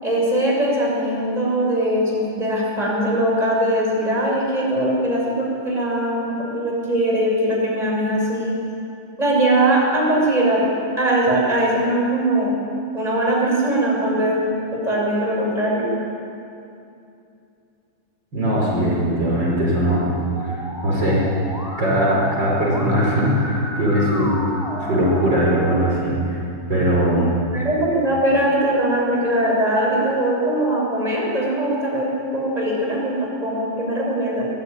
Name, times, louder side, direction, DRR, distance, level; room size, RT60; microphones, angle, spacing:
voice 1, 0.0-8.6 9.2-10.6 11.0-12.5 12.9-14.4 14.7-15.9 27.5-34.4, right 1 dB, 15° right, -3 dB, 6.7 m, -21 dB
voice 2, 18.3-20.1 20.4-21.2 21.8-24.4 24.8-26.4 26.7-27.3, equal, 55° right, -4 dB, 5.9 m, -20 dB
Musical instrument, 20.3-25.9, equal, ahead, 6.3 m, -32 dB
23.0 x 19.0 x 9.8 m, 2.6 s
omnidirectional pair, 2.3 m